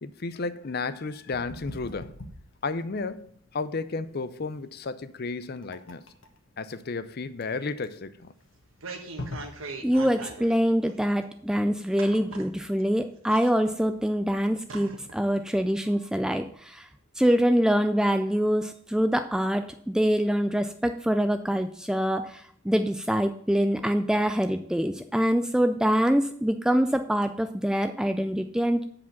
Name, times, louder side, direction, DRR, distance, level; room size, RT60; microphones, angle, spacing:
voice 1, 0.0-2.2 2.6-6.0 6.6-8.3, left 4 dB, 50° left, 0.6 m, -33 dB
sound 1, 1.3-10.1, left 2 dB, 70° left, 1.4 m, -43 dB
sound 2, 8.5-10.6 10.9-11.0 12.0-12.9 13.3-13.9 14.3-14.4 14.7-15.2 15.6-15.7, right 3 dB, 80° right, 1.3 m, -40 dB
voice 2, 9.8-16.9 17.2-28.8, equal, 5° right, 0.3 m, -25 dB
8.3 x 4.9 x 7.1 m
head